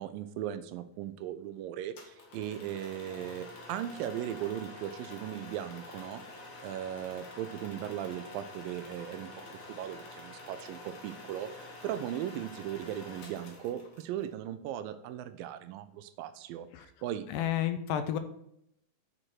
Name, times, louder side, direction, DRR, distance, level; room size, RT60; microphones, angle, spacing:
voice 1, 0.0-6.2 6.6-17.3, right 11 dB, 85° right, 12 dB, 2.3 m, -38 dB
sound 1, 2.0-14.3, left 2 dB, 45° left, 1.9 m, -48 dB
voice 2, 17.3-18.2, left 10 dB, 80° left, 10 dB, 2.2 m, -31 dB
7.7 x 6.4 x 4.4 m, 0.76 s
omnidirectional pair, 4.0 m